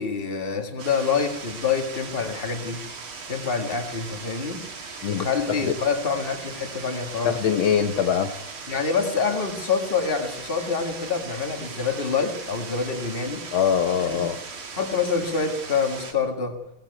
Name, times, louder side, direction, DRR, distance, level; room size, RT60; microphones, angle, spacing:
voice 1, 0.0-2.8 3.3-4.7 5.1-7.3 8.7-13.5 14.0-14.2 14.8-16.6, left 5 dB, 25° left, 4 dB, 2.2 m, -26 dB
sound 1, 0.8-16.1, right 4 dB, 80° right, 3.0 m, -38 dB
voice 2, 7.2-8.3 13.5-14.4, left 8 dB, 70° left, 7 dB, 1.7 m, -22 dB
18.0 x 15.5 x 9.3 m, 0.86 s
omnidirectional pair, 2.3 m